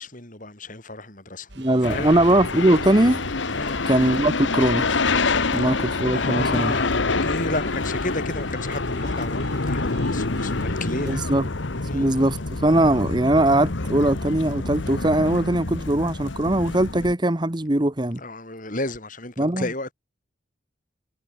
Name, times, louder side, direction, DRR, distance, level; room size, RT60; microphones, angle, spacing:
voice 1, 0.0-1.5 1.9-2.1 3.5-3.8 5.6-5.8 6.1-11.2 11.8-12.1 18.2-19.9, left 2 dB, 40° left, 5.5 m, -32 dB
sound 1, 1.5-11.2, right 1 dB, 60° right, 4.1 m, -43 dB
voice 2, 1.6-3.2 3.9-4.9 5.5-6.7 11.1-11.4 11.9-18.2 19.4-19.6, right 1 dB, 20° right, 1.1 m, -20 dB
sound 2, 1.8-17.1, left 3 dB, 70° left, 1.3 m, -27 dB
head